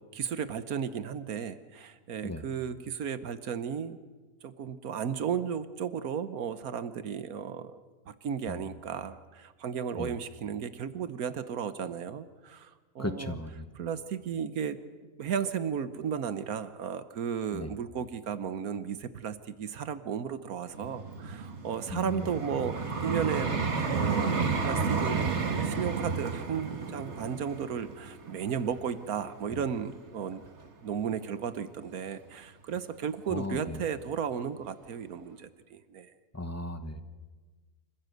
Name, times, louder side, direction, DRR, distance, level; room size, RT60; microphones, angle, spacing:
voice 1, 0.1-4.0 4.4-7.7 8.1-13.4 13.7-14.8 15.2-23.5 23.9-30.4 30.8-36.1, right 7 dB, 75° right, 12 dB, 1.4 m, -34 dB
voice 2, 13.0-13.7 17.5-17.7 21.9-22.3 33.3-33.8 36.3-37.0, left 2 dB, 10° left, 9 dB, 0.9 m, -36 dB
Vehicle, 20.7-29.8 30.4-30.6, right 5 dB, 50° right, 1.8 m, -32 dB
26.0 x 15.0 x 7.9 m, 1.3 s
omnidirectional pair, 1.6 m